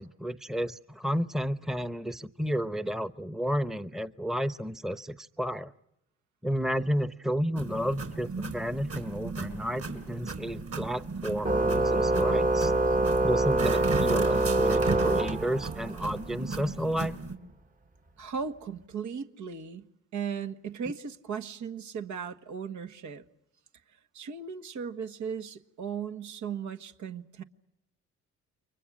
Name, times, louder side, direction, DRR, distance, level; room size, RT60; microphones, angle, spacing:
voice 1, 0.0-5.7 6.4-12.7 13.2-17.2, equal, ahead, 0.9 m, -31 dB
sound 1, 7.6-17.4, right 4 dB, 50° right, 4.8 m, -36 dB
Organ, 11.4-16.0, right 2 dB, 25° right, 1.2 m, -25 dB
voice 2, 18.2-23.2 24.1-27.4, right 6 dB, 75° right, 1.7 m, -37 dB
29.5 x 24.5 x 6.3 m
cardioid pair, 90°, 30 cm